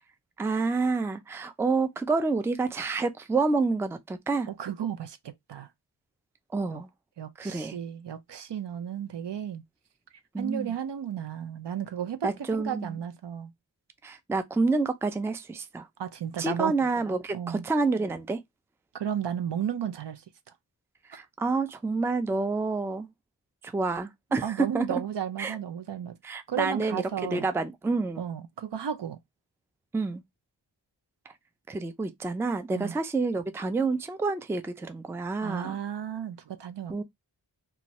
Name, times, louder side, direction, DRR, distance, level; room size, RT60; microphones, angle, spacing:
voice 1, 0.4-4.5 6.5-6.9 7.4-7.8 10.3-10.7 12.2-13.0 14.0-15.9 16.4-18.4 21.0-23.1 23.6-25.0 25.4-25.6 26.2-28.2 29.9-30.2 31.7-35.8 36.9-37.0, right 3 dB, 5° right, 0.3 m, -28 dB
voice 2, 4.5-5.7 6.7-6.8 7.2-9.6 10.4-13.5 16.0-16.7 17.3-17.7 18.9-20.2 24.4-26.2 26.5-27.4 28.2-29.2 32.8-32.9 35.4-37.0, right 9 dB, 70° right, 0.5 m, -33 dB
2.5 x 2.3 x 2.9 m
wide cardioid pair, 45°, 44 cm